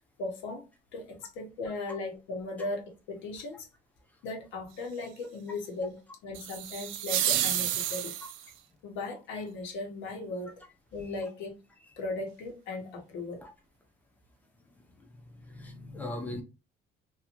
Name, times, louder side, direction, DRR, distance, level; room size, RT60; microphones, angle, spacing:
voice 1, 0.2-0.7 0.9-3.7 4.2-8.1 8.4-8.5 8.8-10.5 10.9-11.6 12.0-13.4, left 2 dB, 75° left, 0.9 m, -37 dB
sound 1, 6.3-8.5, right 11 dB, 85° right, 0.4 m, -30 dB
voice 2, 15.3-16.4, left 2 dB, 10° left, 0.5 m, -39 dB
2.5 x 2.4 x 2.8 m
cardioid pair, 170°, 19 cm